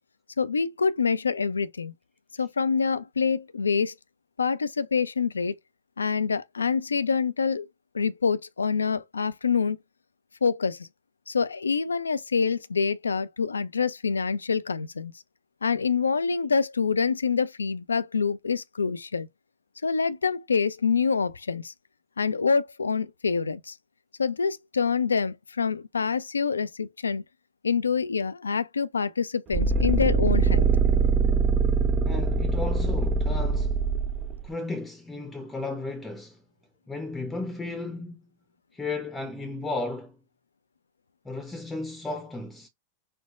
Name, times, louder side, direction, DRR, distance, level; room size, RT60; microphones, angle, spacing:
voice 1, 0.4-1.9 2.4-4.0 4.4-5.5 6.0-7.7 7.9-9.8 10.4-10.9 11.3-15.1 15.6-19.3 19.8-21.7 22.2-23.8 24.2-27.2 27.6-30.7, left 5 dB, 75° left, 0.3 m, -26 dB
sound 1, 29.5-34.4, right 4 dB, 30° right, 0.4 m, -23 dB
voice 2, 32.1-33.8 34.4-36.4 36.9-38.2 38.7-40.2 41.2-42.7, left 2 dB, 10° left, 0.6 m, -34 dB
4.4 x 2.1 x 2.4 m
figure-of-eight pair, 90°, 0 cm